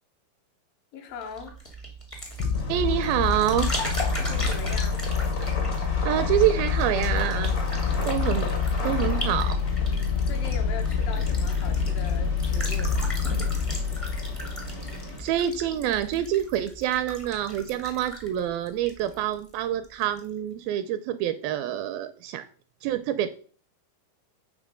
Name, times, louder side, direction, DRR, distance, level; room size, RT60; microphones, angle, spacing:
voice 1, 0.9-1.6 4.1-5.1 9.9-13.1, left 5 dB, 70° left, 2.5 m, -40 dB
sound 1, 1.2-19.5 19.8-20.3, equal, 30° left, 0.6 m, -38 dB
sound 2, 2.4-15.7, left 6 dB, 90° left, 3.1 m, -27 dB
sound 3, 2.5-15.2, left 1 dB, 50° left, 0.9 m, -36 dB
voice 2, 2.7-3.7 6.0-7.5 8.0-8.5 8.8-9.6 15.2-22.4 22.8-23.3, right 11 dB, 80° right, 2.2 m, -26 dB
8.9 x 3.6 x 6.3 m
omnidirectional pair, 4.5 m